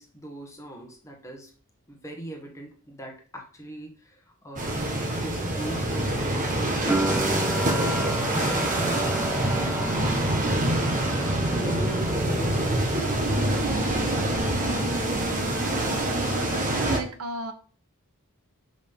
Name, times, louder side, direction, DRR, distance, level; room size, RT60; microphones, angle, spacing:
voice 1, 0.0-1.5 1.9-7.0 7.5-10.2 10.6-13.2 13.8-14.5, right 1 dB, 15° left, 1 dB, 1.4 m, -40 dB
sound 1, 4.6-17.0, right 1 dB, 35° right, 1.2 m, -25 dB
sound 2, 6.9-13.7 13.9-14.8, right 2 dB, 10° right, 0.3 m, -33 dB
voice 2, 16.3-17.5, right 2 dB, 75° right, 9 dB, 0.9 m, -33 dB
6.3 x 5.2 x 3.6 m, 0.42 s
head